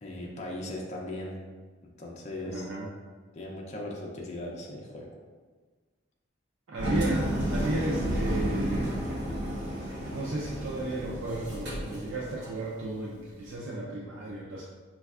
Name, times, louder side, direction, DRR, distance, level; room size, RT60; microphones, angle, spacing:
voice 1, 0.0-1.4 2.0-2.7 3.3-5.1, left 1 dB, 35° left, -2 dB, 0.4 m, -38 dB
voice 2, 2.4-2.9 6.7-9.0 10.1-14.6, right 2 dB, 75° right, -5 dB, 0.4 m, -34 dB
Engine, 6.8-12.6, equal, 60° right, 0.8 m, -31 dB
4.9 x 2.3 x 2.3 m, 1.4 s
head